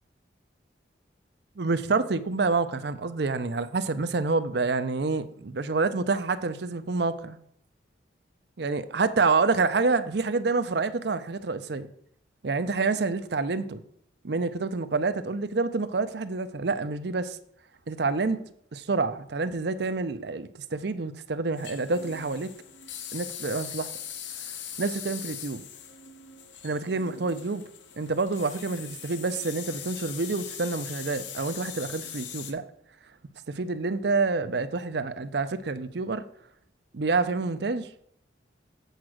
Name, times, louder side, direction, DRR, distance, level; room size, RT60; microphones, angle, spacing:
voice 1, 1.6-7.4 8.6-11.9 12.4-13.8 14.2-17.4 17.9-18.4 18.7-22.5 23.1-23.9 24.8-25.6 26.6-27.6 28.0-32.6 33.5-36.2 36.9-38.0, right 3 dB, 60° right, 12 dB, 0.6 m, -28 dB
sound 1, 21.6-32.5, left 8 dB, 75° left, 0.9 m, -41 dB
8.0 x 4.8 x 6.3 m, 0.68 s
head